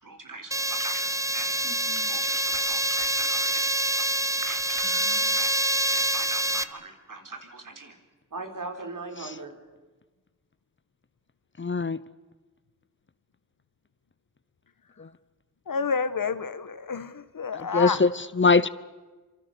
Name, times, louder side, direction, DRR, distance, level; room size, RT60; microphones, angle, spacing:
voice 1, 0.0-1.6 2.0-3.7 4.0-5.5 5.9-8.0 8.3-9.6, right 3 dB, 65° right, 4 dB, 4.1 m, -40 dB
sound 1, 0.5-6.6, right 1 dB, 10° right, 1.1 m, -26 dB
voice 2, 11.6-12.0 15.0-15.1 17.5-18.7, left 4 dB, 35° left, 17 dB, 0.8 m, -22 dB
voice 3, 15.7-18.0, left 5 dB, 75° left, 13 dB, 1.4 m, -29 dB
26.0 x 25.5 x 7.0 m, 1.3 s
cardioid pair, 55°, 34 cm